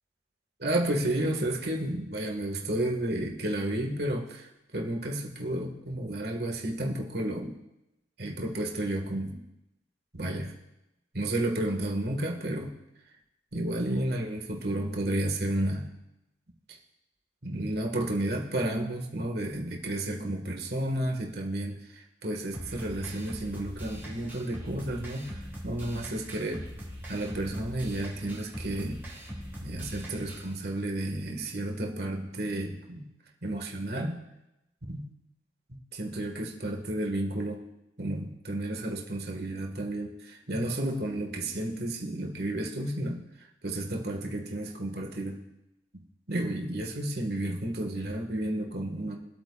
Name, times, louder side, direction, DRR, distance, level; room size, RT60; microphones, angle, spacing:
voice 1, 0.6-7.6 8.2-9.4 10.1-10.5 11.1-12.8 13.5-15.9 17.4-25.4 25.6-26.7 27.1-29.1 29.6-33.1 33.4-34.2 34.9-35.1 35.9-37.6 38.0-43.2 43.6-45.4 45.9-49.1, right 1 dB, 60° right, 1 dB, 1.7 m, -32 dB
sound 1, 22.5-30.5, equal, 10° right, 2.7 m, -41 dB
24.5 x 8.3 x 2.4 m, 0.93 s
head